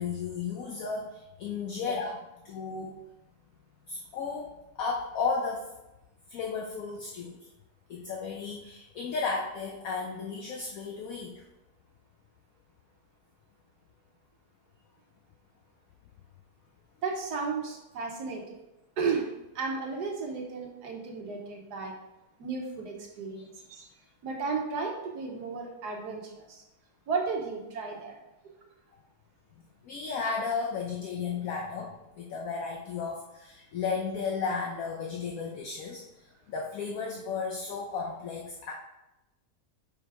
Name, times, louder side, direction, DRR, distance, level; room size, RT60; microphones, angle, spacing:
voice 1, 0.0-2.2 2.4-3.0 3.9-4.5 4.8-5.6 6.3-7.4 7.9-11.3 23.4-23.5 23.8-23.9 29.8-36.0 36.5-38.7, left 5 dB, 65° left, -1 dB, 1.1 m, -34 dB
voice 2, 17.0-18.6 19.0-19.2 19.5-22.0 22.4-26.6 27.1-28.2, right 4 dB, 80° right, 1 dB, 1.5 m, -34 dB
5.1 x 4.8 x 4.7 m, 0.96 s
omnidirectional pair, 1.7 m